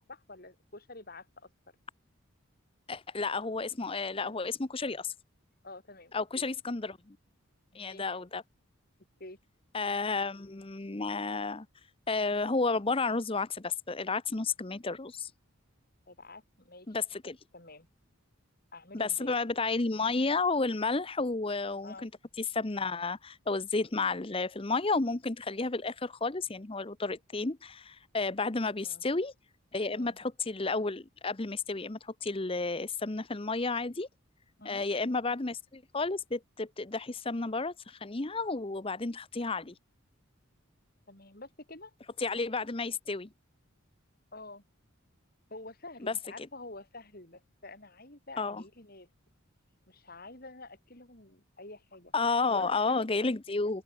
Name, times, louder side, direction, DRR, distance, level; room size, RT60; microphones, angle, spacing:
voice 1, 0.0-1.5 5.6-6.4 7.7-8.1 9.2-9.4 16.1-17.0 17.5-17.9 18.7-19.4 21.8-22.1 28.8-29.0 29.9-30.2 34.6-34.9 41.1-41.9 44.3-44.6 45.5-49.1 49.9-52.1 52.5-53.7, left 2 dB, 45° left, 5.3 m, -48 dB
voice 2, 2.9-5.1 6.1-7.2 7.7-8.4 9.7-11.7 12.1-15.3 16.9-17.4 18.9-22.1 22.4-29.3 29.7-34.1 34.6-39.7 42.2-43.3 46.0-46.5 48.4-48.6 52.1-53.8, left 3 dB, 25° left, 0.8 m, -32 dB
open air
head